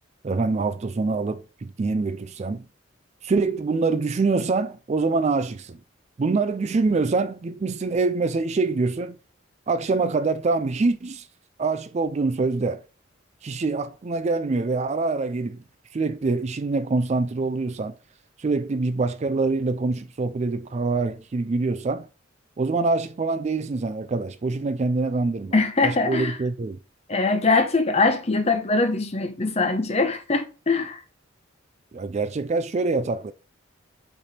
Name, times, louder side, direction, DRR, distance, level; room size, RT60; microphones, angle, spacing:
voice 1, 0.2-2.6 3.2-5.8 6.2-9.2 9.7-11.3 11.6-12.8 13.4-15.6 15.9-18.0 18.4-22.1 22.6-25.6 25.8-26.8 31.9-33.3, right 3 dB, 35° right, 0.3 m, -25 dB
voice 2, 25.5-26.4 27.1-31.0, left 3 dB, 30° left, 0.9 m, -22 dB
6.8 x 3.3 x 5.7 m
head